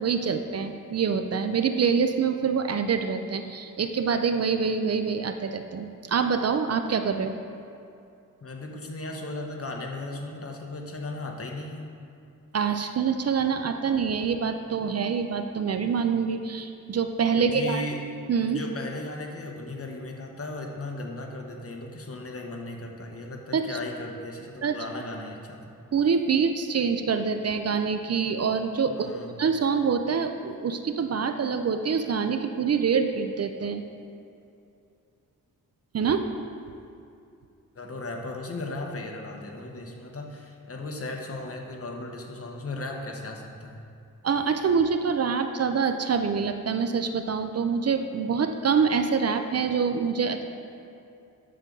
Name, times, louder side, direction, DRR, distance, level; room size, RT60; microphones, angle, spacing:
voice 1, 0.0-7.3 12.5-17.8 18.3-18.6 23.5-23.8 24.6-24.8 25.9-29.1 29.4-33.8 35.9-36.2 44.2-50.4, right 6 dB, 50° right, 7 dB, 0.5 m, -25 dB
voice 2, 8.4-11.9 17.4-18.0 18.5-25.6 28.9-29.3 37.7-43.8, left 2 dB, 45° left, 1 dB, 1.1 m, -36 dB
9.9 x 6.7 x 3.8 m, 2.5 s
wide cardioid pair, 100°, 33 cm